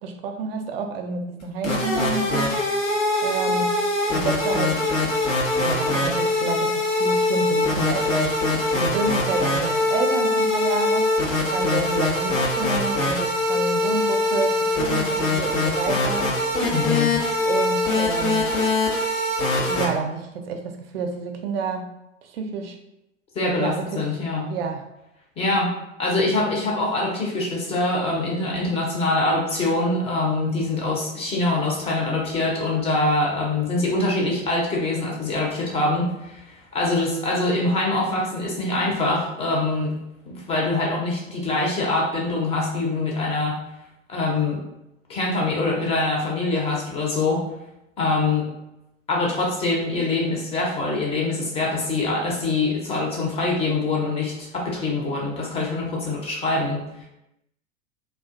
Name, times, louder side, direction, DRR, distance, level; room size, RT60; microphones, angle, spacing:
voice 1, 0.0-2.6 3.2-3.8 4.1-4.9 5.6-8.4 8.7-11.1 11.5-16.3 17.5-18.5 19.7-21.9 22.2-22.8 23.6-24.1 24.5-24.9, right 5 dB, 50° right, 5 dB, 0.4 m, -29 dB
sound 1, 1.4-19.9, left 2 dB, 80° left, 0.8 m, -23 dB
voice 2, 16.7-17.1 23.3-24.5 25.4-25.7 26.0-36.4 36.7-39.9 40.3-43.6 44.1-44.6 45.1-47.4 48.0-48.5 49.1-56.8, left 2 dB, 15° left, -2 dB, 0.5 m, -24 dB
2.4 x 2.2 x 2.4 m, 0.88 s
figure-of-eight pair, 90°, 39 cm